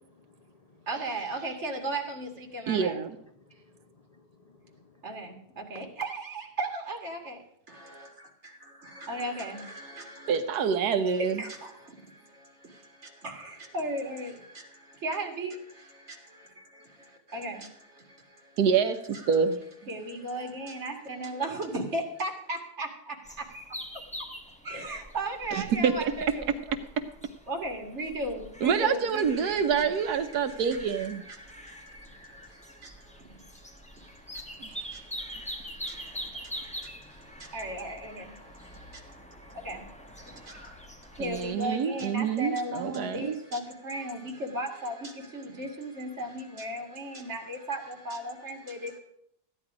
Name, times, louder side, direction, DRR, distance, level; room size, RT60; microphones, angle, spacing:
voice 1, 0.1-0.8 3.4-5.1 5.7-5.8, left 3 dB, 55° left, 5 dB, 0.4 m, -57 dB
voice 2, 0.9-3.0 5.0-7.4 7.7-10.4 11.2-18.6 19.1-19.4 19.9-23.5 24.6-26.5 27.5-29.9 30.3-49.0, right 1 dB, 45° right, 2 dB, 2.3 m, -37 dB
voice 3, 2.7-3.2 10.3-11.4 18.6-19.6 25.5-25.9 28.6-31.3 34.6-35.0 41.2-43.4, right 6 dB, 75° right, 9 dB, 1.2 m, -27 dB
sound 1, 23.2-41.5, equal, 5° left, 0.8 m, -44 dB
14.5 x 10.0 x 4.9 m, 0.73 s
omnidirectional pair, 1.8 m